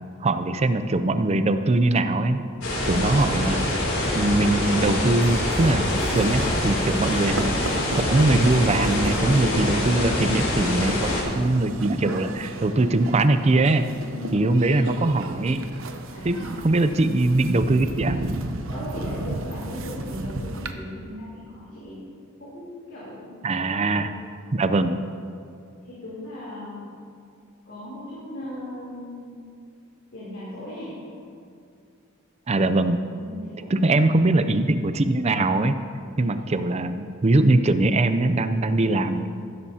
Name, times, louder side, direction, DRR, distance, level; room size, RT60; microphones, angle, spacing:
voice 1, 0.2-2.4 2.9-3.6 4.1-7.5 8.1-11.0 11.3-13.8 14.3-15.6 16.2-18.2 23.4-24.1 24.5-25.0 32.5-33.0 33.7-35.8 36.2-39.3, right 2 dB, 30° right, 10 dB, 0.5 m, -21 dB
sound 1, 2.6-11.2, left 1 dB, 85° left, 2.9 m, -25 dB
sound 2, 5.2-20.7, right 2 dB, 70° right, 0.7 m, -34 dB
voice 2, 14.1-14.5 16.1-16.6 18.7-22.0 22.4-24.1 25.8-26.9 27.6-29.4 30.1-31.0 33.1-34.3 36.4-36.5, left 1 dB, 60° left, -9 dB, 3.2 m, -38 dB
15.0 x 13.0 x 2.8 m, 2.4 s
head